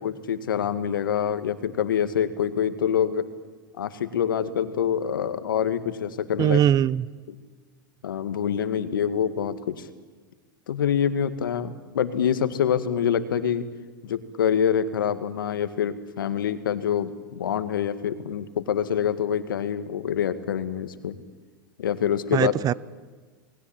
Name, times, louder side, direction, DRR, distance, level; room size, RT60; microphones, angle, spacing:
voice 1, 0.0-3.2 3.8-6.6 8.0-9.9 10.7-13.7 14.0-21.2 21.8-22.5, left 8 dB, 80° left, 11 dB, 1.9 m, -26 dB
voice 2, 6.4-7.1 22.3-22.7, right 10 dB, 35° right, 21 dB, 0.7 m, -21 dB
28.5 x 20.5 x 9.0 m, 1.4 s
hypercardioid pair, 95°, 11 cm